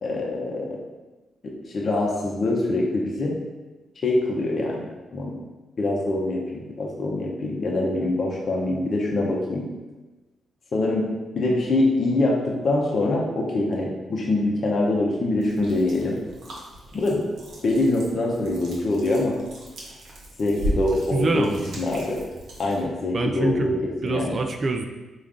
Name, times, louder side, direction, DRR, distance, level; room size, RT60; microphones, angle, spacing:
voice 1, 0.0-0.8 1.4-3.3 4.0-4.9 5.1-5.3 5.8-9.7 10.7-11.1 11.3-16.2 16.9-17.2 17.6-19.4 20.4-21.5 21.8-22.2 22.6-24.4, left 2 dB, 55° left, -2 dB, 0.7 m, -24 dB
sound 1, 15.4-22.9, equal, 75° right, 0.9 m, -36 dB
voice 2, 21.1-21.8 23.1-23.8 24.0-24.9, right 3 dB, 50° right, 4 dB, 0.3 m, -25 dB
3.5 x 2.5 x 3.5 m, 1.2 s
supercardioid pair, 50°, 0 cm